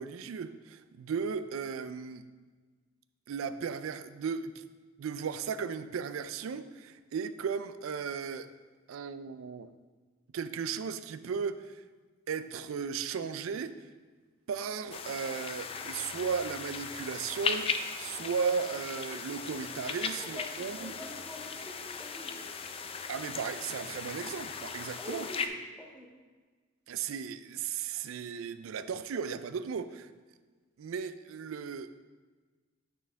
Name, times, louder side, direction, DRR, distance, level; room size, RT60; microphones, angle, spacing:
voice 1, 0.0-2.2 3.3-4.7 5.0-8.5 8.9-9.7 10.3-11.8 12.3-13.9 14.5-20.9 23.1-25.3 26.9-30.1 30.8-31.9, right 6 dB, 75° right, 13 dB, 0.4 m, -36 dB
sound 1, 14.9-25.5, left 5 dB, 30° left, 0.3 m, -38 dB
voice 2, 20.2-22.6 25.0-26.1, equal, 5° left, -1 dB, 0.8 m, -46 dB
8.9 x 4.4 x 3.4 m, 1.4 s
head